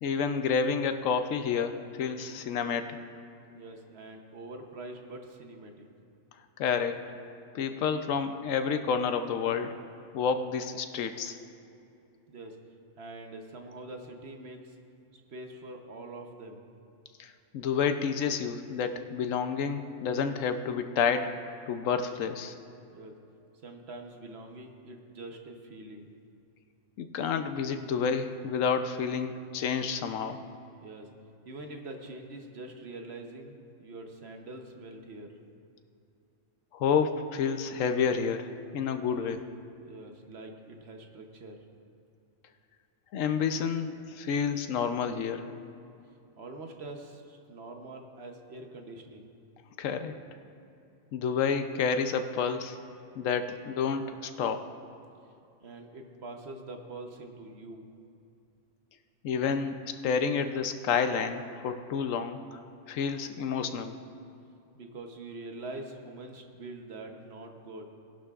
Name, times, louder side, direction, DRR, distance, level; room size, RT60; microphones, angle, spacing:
voice 1, 0.0-3.0 6.6-7.0 7.5-9.7 10.1-11.4 17.2-21.3 21.7-22.5 27.0-30.4 36.7-39.4 43.1-45.5 49.8-50.1 51.1-52.8 53.2-54.7 59.2-62.6 62.9-63.9, left 6 dB, 80° left, 8 dB, 1.0 m, -29 dB
voice 2, 3.5-5.9 12.3-12.6 13.0-14.8 15.1-16.6 22.9-23.2 23.6-26.1 30.8-31.1 31.4-35.3 39.1-39.3 39.8-41.6 46.4-49.3 55.6-57.9 64.7-67.9, right 2 dB, 55° right, 3 dB, 1.1 m, -44 dB
18.5 x 11.5 x 2.4 m, 2.6 s
omnidirectional pair, 1.4 m